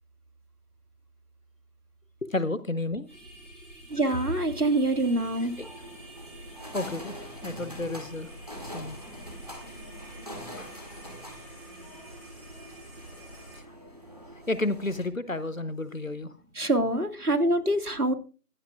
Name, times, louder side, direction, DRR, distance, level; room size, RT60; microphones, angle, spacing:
voice 1, 2.2-3.1 5.6-5.7 6.7-7.2 7.4-8.3 8.7-9.0 10.6-10.7 14.5-16.3, left 2 dB, 55° left, 15 dB, 0.9 m, -31 dB
sound 1, 3.1-13.6, right 1 dB, 10° left, 3.3 m, -48 dB
sound 2, 3.9-15.1, equal, 25° right, 2.0 m, -44 dB
voice 2, 3.9-5.5 16.6-18.1, right 1 dB, 70° right, 8 dB, 2.2 m, -25 dB
15.0 x 12.0 x 2.4 m, 0.36 s
figure-of-eight pair, 175°, 47 cm